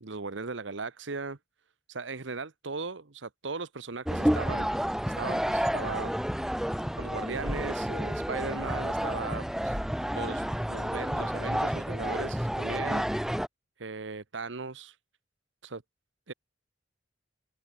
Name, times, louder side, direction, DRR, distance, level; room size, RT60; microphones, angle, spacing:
voice 1, 0.0-1.4 1.9-4.7 5.0-6.1 7.0-9.8 10.1-13.1 13.8-15.0 15.6-15.8 16.3-16.4, right 4 dB, 80° right, 1.1 m, -37 dB
sound 1, 4.1-13.5, equal, ahead, 0.7 m, -30 dB
open air
head